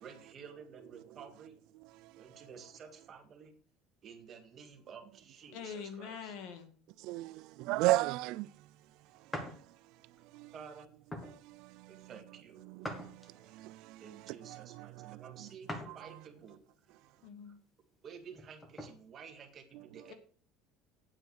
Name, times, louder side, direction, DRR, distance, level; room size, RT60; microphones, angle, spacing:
voice 1, 0.0-1.6 2.2-3.5 4.0-6.4 10.5-10.9 11.9-12.7 14.0-16.6 18.0-20.1, right 6 dB, 30° right, 1.8 m, -52 dB
voice 2, 1.9-2.5 7.0-8.5 9.4-9.6 10.3-10.5 11.3-12.1 12.6-14.0 14.5-15.5 15.9-16.0 19.7-19.8, right 18 dB, 65° right, 0.4 m, -36 dB
voice 3, 5.5-6.7 17.2-17.6 20.1-20.2, left 6 dB, 65° left, 2.1 m, -44 dB
sound 1, 9.3-9.6 10.2-10.4 11.1-11.4 12.8-13.6 15.7-16.0 16.5-16.6 18.2-18.9, left 1 dB, 10° left, 1.6 m, -43 dB
9.0 x 7.9 x 6.3 m
cardioid pair, 160°, 0 cm